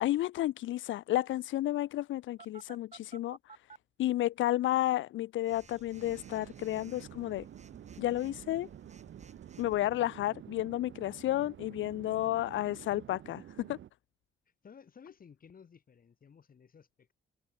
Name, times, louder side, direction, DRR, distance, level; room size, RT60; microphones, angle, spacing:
voice 1, 0.0-3.4 4.0-7.4 8.0-8.7 9.6-13.4 13.7-13.8, left 14 dB, 75° left, 0.7 m, -31 dB
Telephone, 2.4-3.8 5.5-9.8, right 5 dB, 35° right, 4.8 m, -55 dB
Conversation / Chatter / Fixed-wing aircraft airplane, 5.9-13.9, right 11 dB, 70° right, 5.7 m, -50 dB
voice 2, 14.6-17.1, left 6 dB, 45° left, 5.9 m, -56 dB
cardioid pair, 90°, 20 cm